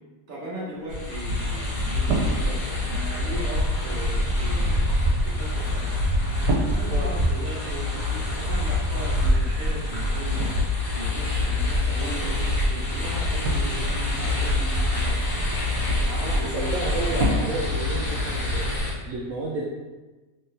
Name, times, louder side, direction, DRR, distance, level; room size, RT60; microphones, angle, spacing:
voice 1, 0.3-15.2 15.8-16.9, right 1 dB, 35° right, -6 dB, 1.0 m, -38 dB
sound 1, 0.7-18.7, right 3 dB, 90° right, 1.3 m, -36 dB
sound 2, 0.9-18.9, left 1 dB, 55° left, 1.3 m, -25 dB
voice 2, 16.1-19.6, right 2 dB, 70° right, -3 dB, 0.8 m, -32 dB
3.7 x 3.3 x 2.7 m, 1.2 s
omnidirectional pair, 1.7 m